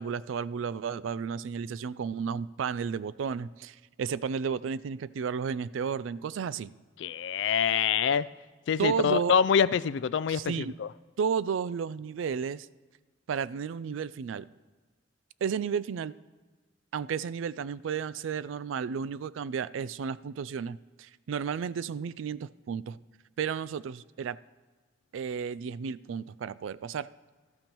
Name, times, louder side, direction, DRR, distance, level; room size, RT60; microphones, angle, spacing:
voice 1, 0.0-6.7 8.8-9.3 10.3-10.7 11.2-12.7 13.3-14.5 15.4-16.1 16.9-23.0 23.4-24.4 25.1-27.1, right 6 dB, 85° right, 18 dB, 0.3 m, -33 dB
voice 2, 7.0-8.3 8.7-10.9, left 7 dB, 65° left, 17 dB, 0.3 m, -25 dB
17.5 x 13.0 x 3.0 m, 1.3 s
head